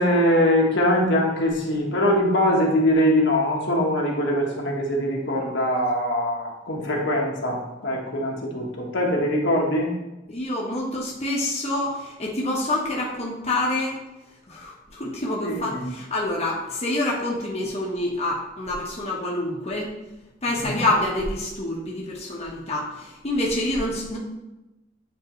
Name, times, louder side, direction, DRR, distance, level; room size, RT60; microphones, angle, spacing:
voice 1, 0.0-9.9 15.4-15.8 20.6-20.8, equal, 65° left, -1 dB, 1.4 m, -22 dB
voice 2, 10.3-14.0 14.5-19.9 20.4-24.2, left 1 dB, 35° left, -4 dB, 1.1 m, -27 dB
9.4 x 3.9 x 3.1 m, 1.0 s
head